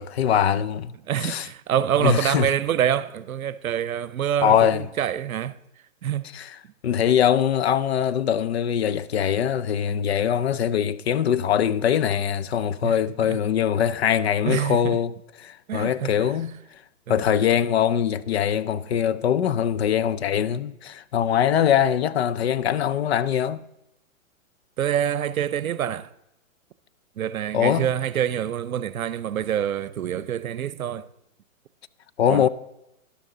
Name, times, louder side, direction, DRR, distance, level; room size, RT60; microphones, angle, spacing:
voice 1, 0.0-0.9 1.2-1.5 2.0-2.5 4.4-4.8 6.3-6.5 6.8-16.5 17.1-23.6 27.5-27.9 32.2-32.5, left 9 dB, 50° left, 0.5 m, -22 dB
voice 2, 1.0-5.6 6.0-6.2 12.8-13.4 14.5-15.0 15.7-16.3 17.1-17.3 24.8-26.1 27.2-31.1 32.3-32.5, right 9 dB, 80° right, 0.7 m, -26 dB
12.0 x 11.5 x 3.8 m
hypercardioid pair, 145°, 41 cm